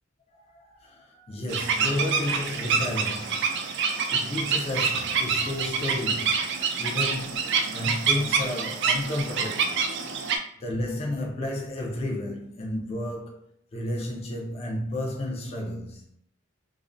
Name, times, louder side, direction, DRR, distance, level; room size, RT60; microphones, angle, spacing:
voice 1, 0.5-3.5 3.8-9.7 10.6-13.4 13.7-16.0, left 1 dB, 30° left, 0.4 m, -32 dB
sound 1, 1.5-10.4, right 5 dB, 60° right, 0.3 m, -27 dB
2.4 x 2.1 x 2.4 m
head